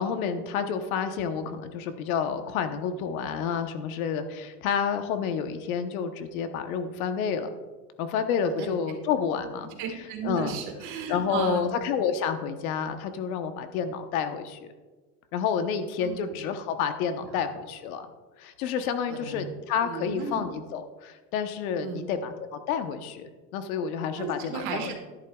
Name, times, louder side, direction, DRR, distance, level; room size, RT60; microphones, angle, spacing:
voice 1, 0.0-7.5 8.0-9.7 10.2-10.6 11.1-14.7 15.3-18.1 18.4-24.9, left 7 dB, 65° left, 8 dB, 1.0 m, -29 dB
voice 2, 9.8-11.6 16.0-16.4 19.1-19.5 19.8-20.4 21.8-22.0 24.1-24.9, right 6 dB, 40° right, 2 dB, 1.6 m, -34 dB
12.0 x 10.5 x 2.3 m, 1.3 s
supercardioid pair, 165°, 46 cm